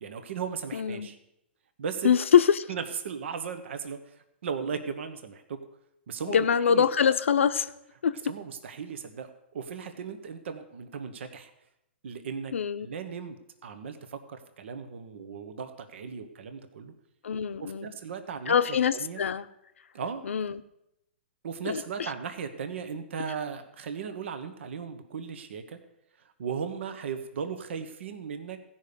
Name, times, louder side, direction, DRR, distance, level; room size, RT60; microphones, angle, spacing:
voice 1, 0.0-1.2 1.8-2.1 2.7-4.2 4.4-5.6 6.1-6.8 8.2-11.5 12.0-12.5 12.8-13.4 13.6-16.9 17.6-19.2 19.9-20.2 21.4-25.8 26.4-28.6, right 6 dB, 70° right, 9 dB, 1.0 m, -37 dB
voice 2, 0.7-1.1 2.0-2.7 6.3-7.7 8.0-8.2 12.5-12.9 17.2-17.9 18.5-19.4 20.3-20.5 21.7-21.8, left 7 dB, 85° left, 12 dB, 0.6 m, -24 dB
15.0 x 5.6 x 6.7 m, 0.84 s
hypercardioid pair, 145°, 7 cm